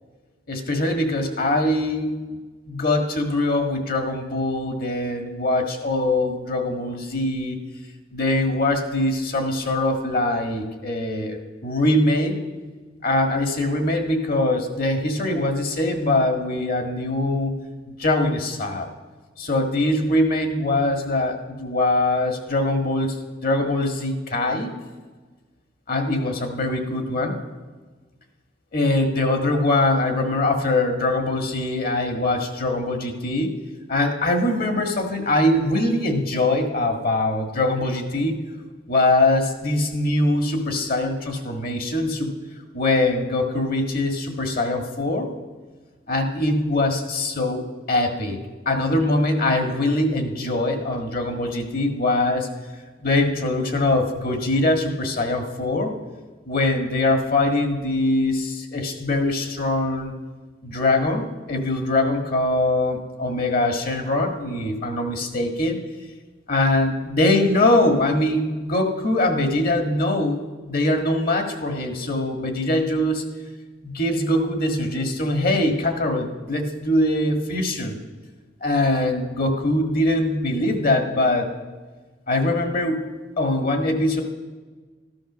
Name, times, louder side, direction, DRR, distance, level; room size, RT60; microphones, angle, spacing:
voice 1, 0.5-2.4 2.7-7.6 8.1-12.3 13.0-17.5 17.9-18.9 19.4-24.7 25.9-27.4 28.7-33.5 33.9-38.4 38.9-42.3 42.7-45.3 46.1-48.4 48.6-52.5 53.0-55.9 56.4-60.1 60.6-65.8 66.5-73.2 73.8-78.0 78.6-81.5 82.3-83.1 83.4-84.2, left 2 dB, 50° left, 4 dB, 1.6 m, -22 dB
14.0 x 11.5 x 6.1 m, 1.4 s
head